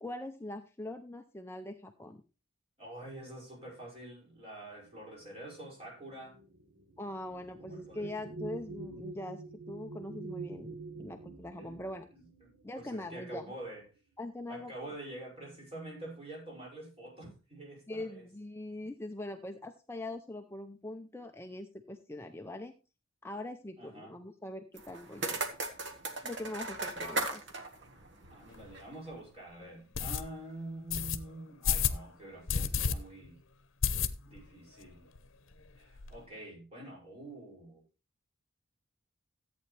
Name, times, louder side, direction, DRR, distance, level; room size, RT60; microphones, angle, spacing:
voice 1, 0.0-2.2 7.0-12.1 12.6-13.4 14.2-14.7 17.9-22.7 23.2-25.4 26.2-27.4, left 1 dB, 10° left, 0.5 m, -42 dB
voice 2, 2.8-6.4 7.6-8.1 11.6-11.8 12.1-13.9 14.5-18.2 23.8-24.2 28.3-33.4 34.3-35.1 35.8-37.8, right 1 dB, 30° right, 6.0 m, -46 dB
sound 1, 4.9-13.8 14.7-14.9 15.2-15.8, right 3 dB, 90° right, 1.3 m, -47 dB
sound 2, 24.8-28.9, right 3 dB, 60° right, 1.6 m, -38 dB
sound 3, 28.5-28.6 29.1-29.2 29.9-30.2 30.9-31.2 31.6-32.0 32.5-32.9 33.3-33.4 33.8-34.5 34.8-34.9 35.2-35.3 35.5-36.1, left 6 dB, 75° left, 0.8 m, -30 dB
14.0 x 8.6 x 3.3 m
head